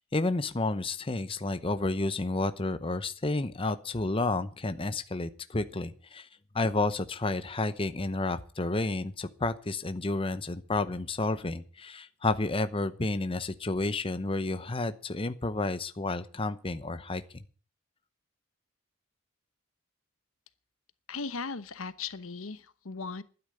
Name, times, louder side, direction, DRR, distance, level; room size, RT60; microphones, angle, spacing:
voice 1, 0.1-6.3 6.5-17.2, left 2 dB, 25° left, 11 dB, 0.8 m, -31 dB
voice 2, 21.1-23.2, left 4 dB, 80° left, 14 dB, 1.0 m, -37 dB
12.0 x 9.8 x 7.8 m, 0.40 s
head